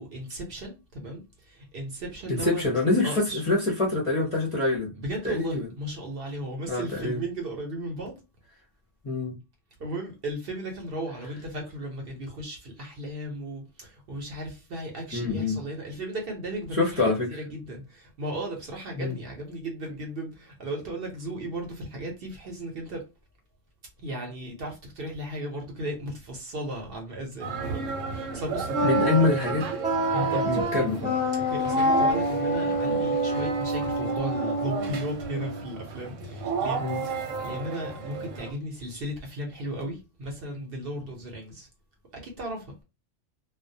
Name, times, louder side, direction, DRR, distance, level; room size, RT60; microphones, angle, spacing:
voice 1, 0.0-2.6 3.0-3.4 5.0-8.2 9.8-23.1 24.0-29.3 30.1-30.5 31.3-41.7 42.1-42.7, right 1 dB, 55° right, 0.8 m, -36 dB
voice 2, 2.3-4.9 5.2-5.7 6.7-7.2 9.0-9.4 15.1-15.6 16.7-17.4 19.0-19.2 28.8-29.7 30.4-31.1 36.8-37.0, left 3 dB, 35° left, 0.5 m, -25 dB
sound 1, 27.4-38.5, right 5 dB, 85° right, 1.0 m, -32 dB
Wind instrument woodwind instrument, 28.7-35.7, equal, 10° right, 0.7 m, -27 dB
2.3 x 2.1 x 2.6 m
omnidirectional pair, 1.3 m